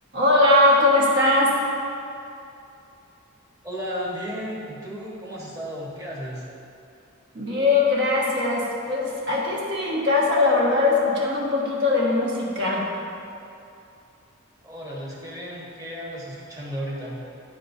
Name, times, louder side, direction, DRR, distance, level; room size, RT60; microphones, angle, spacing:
voice 1, 0.1-1.5 7.3-12.9, left 2 dB, 55° right, -4 dB, 1.5 m, -20 dB
voice 2, 3.6-6.4 14.6-17.2, equal, 15° right, -6 dB, 1.3 m, -34 dB
12.5 x 4.6 x 2.7 m, 2.7 s
head